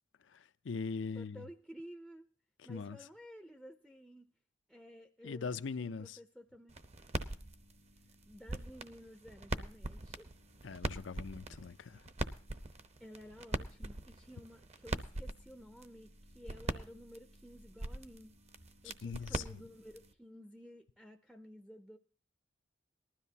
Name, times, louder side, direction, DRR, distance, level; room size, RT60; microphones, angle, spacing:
voice 1, 0.2-1.5 2.6-3.0 5.2-6.2 10.6-12.1 18.8-19.6, left 5 dB, 80° left, 0.5 m, -41 dB
voice 2, 1.1-2.3 2.6-4.3 4.7-6.7 8.3-10.3 13.0-18.3 18.8-22.0, equal, ahead, 0.5 m, -53 dB
sound 1, 6.7-20.1, right 2 dB, 35° right, 0.8 m, -43 dB
19.0 x 13.0 x 2.8 m
head